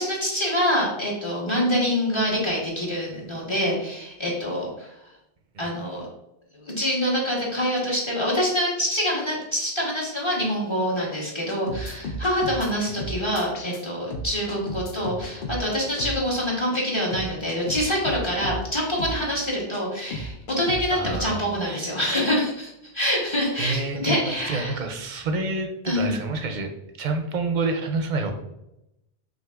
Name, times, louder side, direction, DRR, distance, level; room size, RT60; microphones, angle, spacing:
voice 1, 0.0-4.9 5.6-6.1 6.8-24.7 25.9-26.2, equal, 30° left, -4 dB, 1.0 m, -25 dB
sound 1, 11.5-12.7 13.0-13.8 14.1-15.6 16.0-16.2 16.7-16.8 17.1-18.6 19.0-19.2 19.7-19.8 20.1-21.3, equal, 60° left, 0.7 m, -33 dB
voice 2, 20.9-21.9 23.6-26.7 27.0-28.3, right 3 dB, 60° right, 5 dB, 0.6 m, -28 dB
6.0 x 2.6 x 2.3 m, 0.88 s
omnidirectional pair, 1.0 m